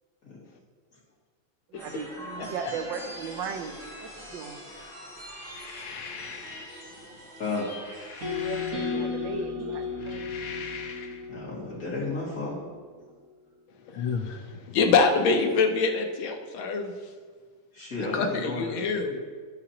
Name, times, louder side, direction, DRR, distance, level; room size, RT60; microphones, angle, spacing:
sound 1, 1.7-8.7, equal, 5° right, 2.3 m, -43 dB
voice 1, 1.7-4.6 8.4-10.2, right 6 dB, 75° right, 6 dB, 1.3 m, -37 dB
sound 2, 5.3-6.8 7.6-9.4 9.9-11.3, left 6 dB, 65° left, 0.8 m, -42 dB
sound 3, 8.2-12.3, left 5 dB, 45° right, 1.6 m, -34 dB
voice 2, 11.3-12.6 17.7-18.9, left 3 dB, 45° left, -6 dB, 2.7 m, -33 dB
voice 3, 13.9-16.9 18.0-19.2, left 4 dB, 85° left, 4 dB, 1.6 m, -25 dB
14.0 x 4.9 x 2.9 m, 1.6 s
omnidirectional pair, 2.2 m